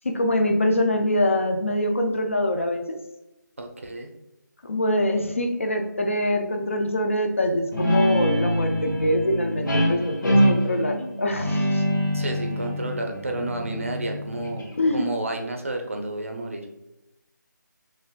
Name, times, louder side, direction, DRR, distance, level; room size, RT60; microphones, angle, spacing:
voice 1, 0.0-3.0 4.6-11.8 14.8-15.1, left 1 dB, 40° left, 4 dB, 0.4 m, -24 dB
voice 2, 3.6-4.1 12.1-16.7, right 2 dB, 40° right, 3 dB, 0.5 m, -31 dB
Guitar, 7.7-14.9, equal, 75° left, 1.5 m, -24 dB
6.0 x 2.5 x 2.2 m, 0.93 s
figure-of-eight pair, 175°, 11 cm